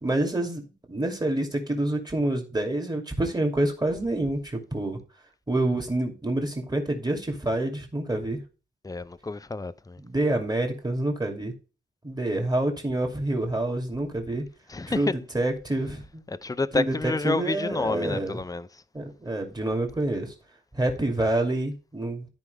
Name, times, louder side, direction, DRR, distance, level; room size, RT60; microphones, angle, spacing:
voice 1, 0.0-5.0 5.5-8.4 10.0-11.5 12.0-14.4 14.9-15.1 15.3-16.2 16.7-18.4 18.9-20.3 20.7-22.3, right 1 dB, 20° right, 2.7 m, -27 dB
voice 2, 8.8-10.0 14.7-15.1 16.3-18.8, left 3 dB, 20° left, 0.5 m, -29 dB
13.5 x 5.2 x 3.4 m
wide cardioid pair, 115°, 20 cm